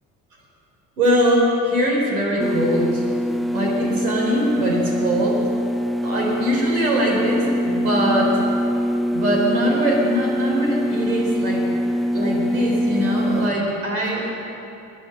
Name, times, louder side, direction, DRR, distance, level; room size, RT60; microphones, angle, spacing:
voice 1, 1.0-3.0 3.5-5.4 6.0-8.4 9.1-11.6 12.1-14.3, equal, 80° right, -2 dB, 4.3 m, -22 dB
sound 1, 2.4-13.5, equal, ahead, 0.3 m, -23 dB
22.0 x 9.4 x 6.2 m, 2.8 s
hypercardioid pair, 55°, 43 cm